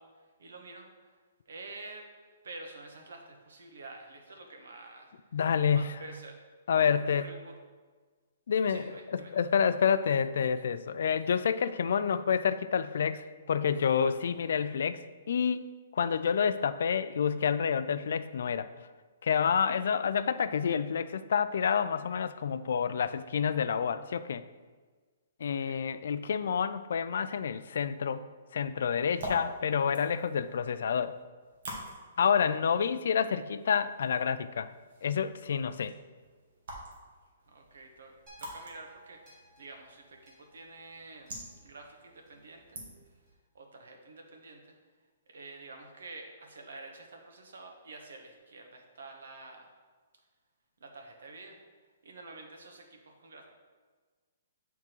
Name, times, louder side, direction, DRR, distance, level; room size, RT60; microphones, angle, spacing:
voice 1, 0.0-2.0 2.4-5.4 5.7-6.4 7.1-7.6 8.7-9.3 19.5-20.0 25.4-25.8 32.6-32.8 37.5-42.8 43.5-44.7 45.3-49.7 50.8-51.6 52.0-53.5, right 3 dB, 80° right, 3 dB, 1.2 m, -49 dB
voice 2, 5.3-5.9 6.7-7.3 8.5-15.0 15.3-18.7 19.2-24.4 25.4-28.2 28.5-31.1 32.2-34.7 35.0-35.9, left 7 dB, 60° left, 13 dB, 0.3 m, -28 dB
sound 1, 28.9-43.3, right 1 dB, 50° right, 1.6 m, -48 dB
sound 2, 38.3-42.6 43.3-43.4, right 2 dB, 25° right, 2.2 m, -60 dB
8.1 x 3.6 x 4.5 m, 1.4 s
hypercardioid pair, 175°, 0 cm